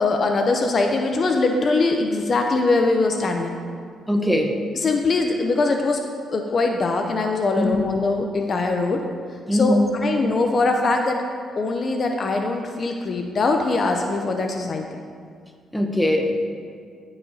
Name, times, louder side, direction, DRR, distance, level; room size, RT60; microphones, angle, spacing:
voice 1, 0.0-3.6 4.8-6.0 6.3-9.0 9.5-11.2 11.6-14.8, left 3 dB, 45° left, 3 dB, 0.5 m, -22 dB
voice 2, 4.1-4.6 7.6-7.8 9.5-9.9 15.7-16.3, left 1 dB, 5° left, 3 dB, 0.8 m, -20 dB
14.0 x 4.8 x 2.8 m, 2.1 s
cardioid pair, 90°, 0 cm